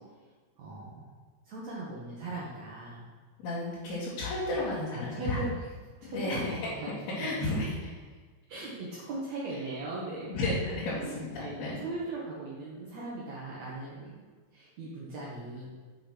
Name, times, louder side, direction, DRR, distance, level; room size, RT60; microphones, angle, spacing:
voice 1, 0.6-1.1 1.4-3.1 4.9-5.5 6.0-6.9 7.2-7.3 8.5-10.3 11.0-14.2 14.5-15.7, right 2 dB, 75° right, -6 dB, 1.6 m, -39 dB
voice 2, 3.4-5.4 6.0-6.5 7.2-7.9 10.3-11.8, left 2 dB, 65° left, -10 dB, 3.8 m, -32 dB
8.1 x 5.8 x 5.9 m, 1.4 s
omnidirectional pair, 5.1 m